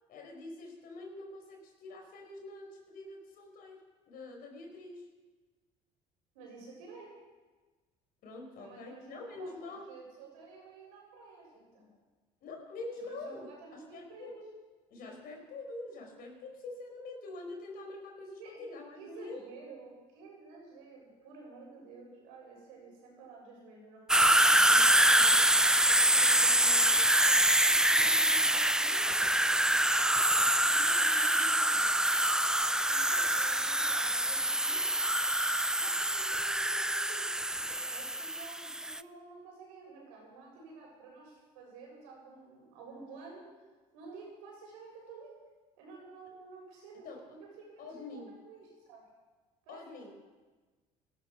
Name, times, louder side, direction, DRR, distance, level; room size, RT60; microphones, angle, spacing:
voice 1, 0.1-5.1 8.2-9.9 12.4-13.5 13.7-14.5 14.9-19.4 46.2-46.4 47.0-47.2 47.8-48.3 49.7-50.1, left 2 dB, 65° left, 2 dB, 4.8 m, -45 dB
voice 2, 6.3-7.1 8.6-11.9 12.9-14.4 18.4-18.5 19.0-25.4 25.8-29.2 30.6-32.0 32.9-34.9 35.7-37.2 37.5-43.4 43.9-45.3 45.8-47.1 47.4-49.0 49.6-49.8, right 4 dB, 90° right, -2 dB, 6.7 m, -51 dB
sound 1, 24.1-39.0, right 1 dB, 5° right, 0.4 m, -25 dB
17.5 x 13.0 x 6.0 m, 1.3 s
supercardioid pair, 75°, 16 cm